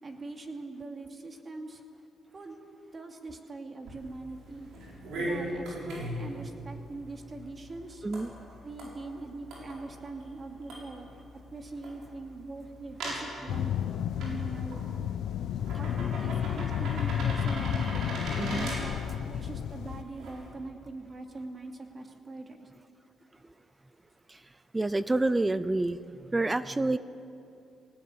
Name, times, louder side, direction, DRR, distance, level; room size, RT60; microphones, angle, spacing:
voice 1, 0.0-1.8 2.3-2.6 2.9-4.7 5.2-8.0 8.6-11.1 11.5-13.7 14.2-15.1 15.8-18.1 18.5-22.7, right 3 dB, 35° right, 3 dB, 2.7 m, -42 dB
sound 1, 3.8-20.5, right 1 dB, 80° right, 7.1 m, -41 dB
sound 2, 13.5-20.0, left 9 dB, 75° left, 0.7 m, -31 dB
voice 2, 18.4-18.7 24.3-24.4 24.7-26.0 26.3-27.0, right 2 dB, 15° right, 15 dB, 0.6 m, -28 dB
20.5 x 18.5 x 8.8 m, 2.6 s
cardioid pair, 90°, 0 cm